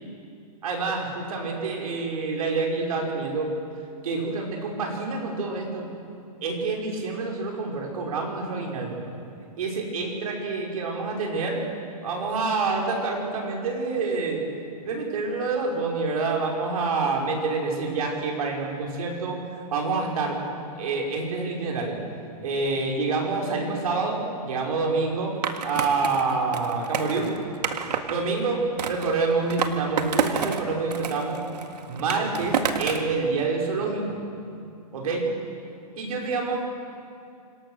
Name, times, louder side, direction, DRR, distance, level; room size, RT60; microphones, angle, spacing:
voice 1, 0.6-3.5 4.0-5.9 6.4-9.0 9.6-11.6 12.0-14.4 14.8-20.4 20.8-22.0 22.4-25.3 25.6-27.3 28.1-31.4 31.9-34.1 34.9-35.3 36.0-36.6, right 4 dB, 60° right, 0 dB, 5.5 m, -27 dB
Skateboard, 25.4-28.2 28.8-30.6 30.9-33.1, right 7 dB, 85° right, 1.9 m, -29 dB
26.0 x 18.0 x 6.4 m, 2.5 s
hypercardioid pair, 165°, 20 cm